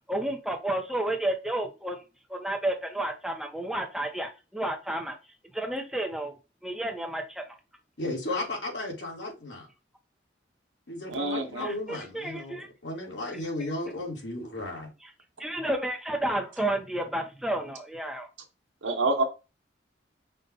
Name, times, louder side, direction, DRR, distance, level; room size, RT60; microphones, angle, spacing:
voice 1, 0.1-2.0 2.3-5.2 5.5-6.3 6.6-7.6 11.6-12.7 15.0-15.1 15.4-18.3, right 1 dB, ahead, 0.8 m, -31 dB
voice 2, 8.0-9.7 10.9-14.9, left 2 dB, 70° left, 1.7 m, -34 dB
voice 3, 11.1-11.7 18.8-19.2, right 2 dB, 90° right, 1.1 m, -27 dB
5.3 x 2.4 x 4.1 m
head